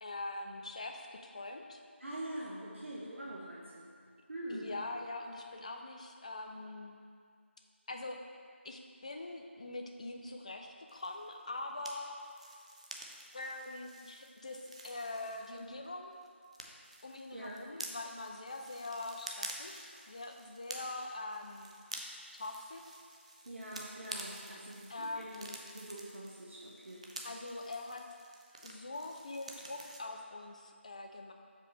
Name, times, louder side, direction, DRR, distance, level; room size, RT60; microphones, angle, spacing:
voice 1, 0.0-1.8 4.5-7.0 7.9-8.2 8.6-12.2 13.3-16.1 17.0-21.7 22.3-22.8 24.9-25.6 27.2-28.0 28.6-31.3, left 2 dB, 30° left, 3 dB, 0.4 m, -43 dB
voice 2, 2.0-3.9 4.3-4.7 17.3-17.6 23.4-27.1, right 1 dB, 70° right, -6 dB, 1.0 m, -44 dB
sound 1, 10.9-15.9 16.1-30.0, right 2 dB, 30° right, 0.4 m, -49 dB
6.3 x 4.9 x 3.3 m, 2.2 s
figure-of-eight pair, 170°, 7 cm